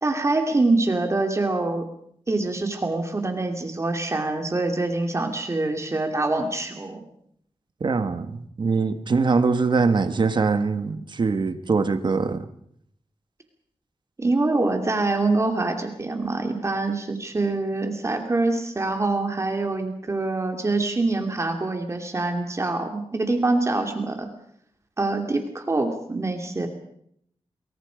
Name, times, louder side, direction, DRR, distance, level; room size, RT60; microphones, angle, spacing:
voice 1, 0.0-1.9 2.3-7.0 14.2-24.3 25.0-26.7, right 2 dB, 30° right, 5 dB, 2.5 m, -25 dB
voice 2, 7.8-12.5, right 4 dB, 50° right, 10 dB, 1.6 m, -23 dB
29.0 x 22.0 x 5.1 m, 0.69 s
wide cardioid pair, 155°, 10 cm